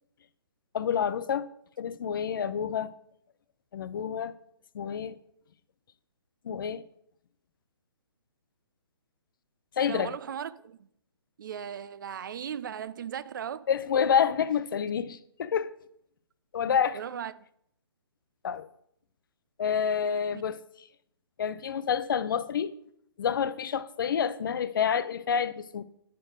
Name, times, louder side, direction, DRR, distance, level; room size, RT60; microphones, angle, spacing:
voice 1, 0.7-1.5 1.8-2.9 3.7-4.3 4.7-5.2 6.4-6.8 9.8-10.1 13.7-15.7 16.5-17.0 18.4-18.7 19.6-20.6 21.4-22.7 23.2-25.8, left 7 dB, 55° left, 0.5 m, -28 dB
voice 2, 9.9-10.9 11.4-13.7 16.9-17.5 20.3-20.4, right 8 dB, 50° right, 0.4 m, -37 dB
8.6 x 4.5 x 5.0 m
figure-of-eight pair, 135°, 13 cm